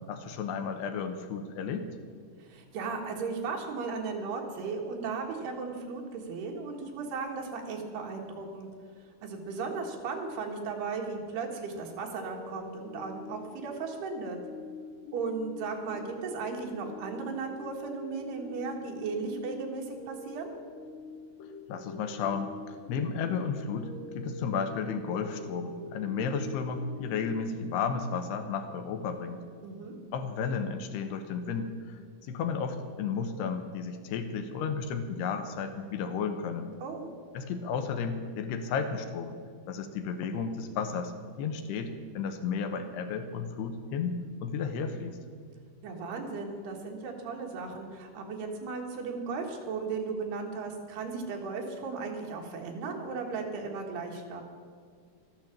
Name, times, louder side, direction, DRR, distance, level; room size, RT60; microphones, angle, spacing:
voice 1, 0.1-1.9 21.7-23.9 24.2-29.4 30.1-32.0 32.3-36.7 37.3-39.3 39.7-45.2, left 5 dB, 85° left, 7 dB, 3.0 m, -33 dB
voice 2, 2.4-8.7 9.2-14.4 15.1-20.5 29.6-30.0 36.8-37.1 45.8-54.4, right 4 dB, 75° right, 1 dB, 3.7 m, -36 dB
sound 1, 12.1-28.5, left 3 dB, 45° left, 3.4 m, -46 dB
13.0 x 11.5 x 7.4 m, 2.1 s
omnidirectional pair, 4.7 m